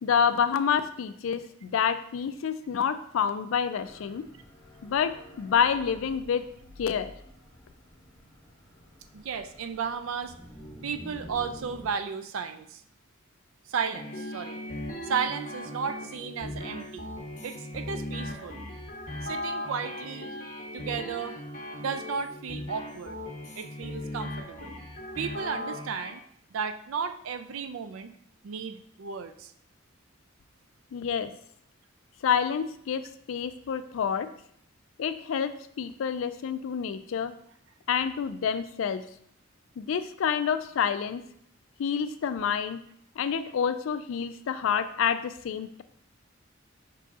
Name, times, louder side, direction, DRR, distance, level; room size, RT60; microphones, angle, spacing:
voice 1, 0.0-4.3 4.8-6.4 6.8-7.1 30.9-31.3 32.2-33.0 33.3-34.3 35.0-35.5 35.8-37.3 37.9-39.0 39.8-41.2 41.8-42.8 43.2-45.8, left 7 dB, 75° left, 11 dB, 0.3 m, -28 dB
sound 1, 3.8-11.9, equal, 20° left, 1.0 m, -49 dB
voice 2, 9.1-10.3 10.8-12.8 13.7-14.6 15.0-17.1 17.4-18.6 19.2-20.3 20.7-21.4 21.8-23.2 23.6-24.7 25.2-26.2 26.5-28.1 28.4-29.5, right 6 dB, 80° right, 10 dB, 0.4 m, -34 dB
sound 2, 13.9-26.1, left 1 dB, 40° left, 1.0 m, -38 dB
5.5 x 3.9 x 2.4 m, 0.68 s
head